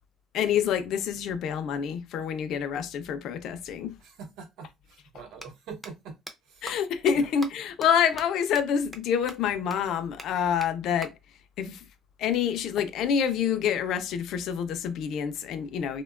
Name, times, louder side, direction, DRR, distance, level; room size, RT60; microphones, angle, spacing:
voice 1, 0.3-4.0 6.6-11.1 11.6-11.9 12.2-16.0, left 8 dB, 65° left, 0.4 m, -27 dB
voice 2, 4.0-6.1 6.4-6.7 7.1-7.2, right 5 dB, 75° right, 0.8 m, -44 dB
sound 1, 5.3-5.5 5.8-5.9 6.3-6.4 6.7-6.8 7.1-7.2 7.4-7.5 7.8-7.9 8.2-8.3 8.5-8.6 8.9-9.0 9.3-9.4 9.7-9.8 10.2-10.3 10.6-10.7 11.0-11.1 12.7-13.8, right 1 dB, 10° right, 0.4 m, -42 dB
2.8 x 2.2 x 2.3 m
cardioid pair, 145°, 0 cm